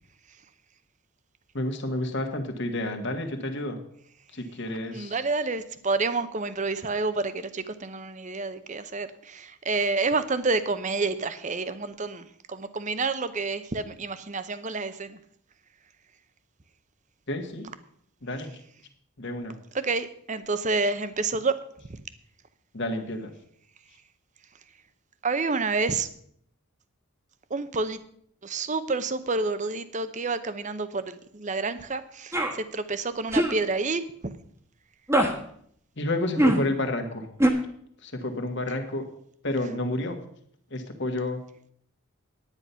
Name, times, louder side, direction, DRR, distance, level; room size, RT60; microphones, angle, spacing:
voice 1, 1.5-3.8 4.3-5.2 17.3-17.7 18.2-18.6 19.2-19.6 22.7-23.3 36.0-37.3 38.0-39.1 39.4-40.2 40.7-41.4, left 1 dB, 55° left, 5 dB, 1.6 m, -30 dB
voice 2, 4.9-15.2 19.7-21.6 21.9-22.0 25.2-26.1 27.5-28.0 28.4-34.0, right 3 dB, 35° right, 12 dB, 0.7 m, -29 dB
sound 1, 32.3-32.5 33.3-33.6 35.1-35.3 36.4-36.6 37.4-37.5, right 1 dB, 10° right, 1.2 m, -21 dB
9.9 x 9.7 x 5.6 m, 0.66 s
head